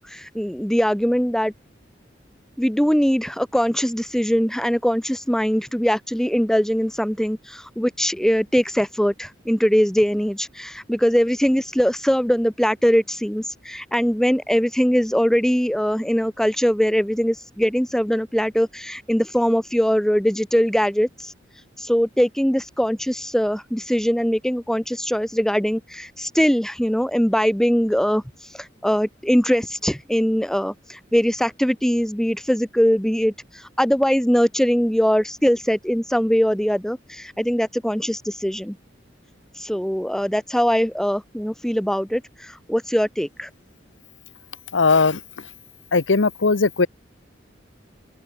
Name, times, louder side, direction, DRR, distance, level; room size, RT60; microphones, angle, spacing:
voice 1, 0.0-1.5 2.6-21.3 21.8-28.2 28.8-33.3 33.8-38.8 39.6-43.5, equal, 5° left, 0.9 m, -21 dB
voice 2, 44.7-45.2 45.9-46.9, left 4 dB, 85° left, 1.0 m, -18 dB
open air
head